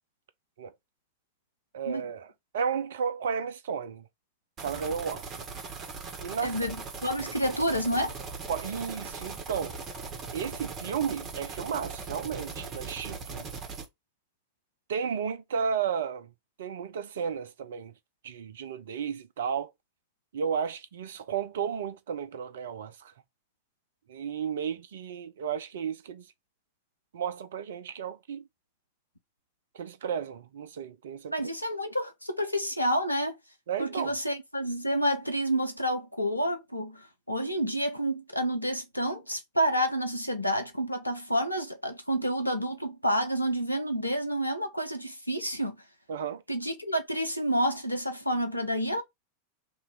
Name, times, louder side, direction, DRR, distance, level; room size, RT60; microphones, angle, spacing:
voice 1, 1.7-4.1 4.6-5.3 6.2-6.6 8.5-9.8 10.3-13.5 14.9-16.3 16.6-17.9 18.2-19.7 20.3-23.1 24.1-26.3 27.1-28.5 29.7-31.4 33.7-34.1 46.1-46.4, right 7 dB, 60° right, 0.5 m, -33 dB
sound 1, 4.6-13.9, right 4 dB, 30° right, 1.3 m, -39 dB
voice 2, 6.4-6.8 7.0-8.1 31.3-33.4 33.8-45.8 46.5-49.0, equal, 85° left, 0.7 m, -29 dB
3.1 x 2.9 x 4.6 m
figure-of-eight pair, 90°, 0 cm